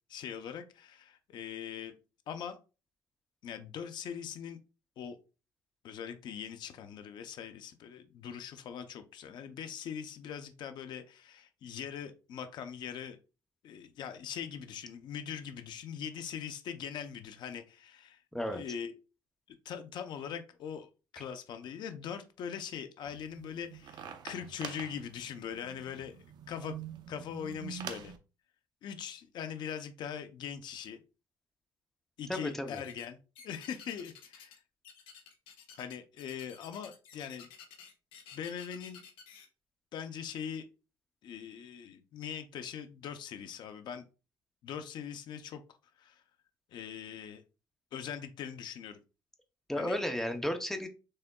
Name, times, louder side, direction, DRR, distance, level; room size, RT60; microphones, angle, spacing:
voice 1, 0.1-1.9 2.3-2.6 3.4-4.6 5.0-5.2 5.8-13.2 13.6-18.2 18.5-18.9 19.6-20.9 21.1-26.8 27.1-28.1 28.8-31.0 32.2-33.2 33.4-34.6 35.7-37.5 38.3-39.0 39.9-40.6 41.2-44.0 44.6-45.6 46.0-46.2 46.7-47.4 47.9-49.0 49.8-50.0, left 8 dB, 60° left, 8 dB, 0.6 m, -41 dB
voice 2, 18.3-18.6 32.3-32.8 49.7-50.9, left 1 dB, 5° left, 7 dB, 0.7 m, -33 dB
sound 1, 23.0-28.2, right 8 dB, 55° right, 0.7 m, -46 dB
sound 2, 32.7-33.1 33.4-34.6 34.8-39.5, left 7 dB, 90° left, 1.1 m, -52 dB
6.4 x 3.4 x 2.3 m, 0.32 s
cardioid pair, 140°, 9 cm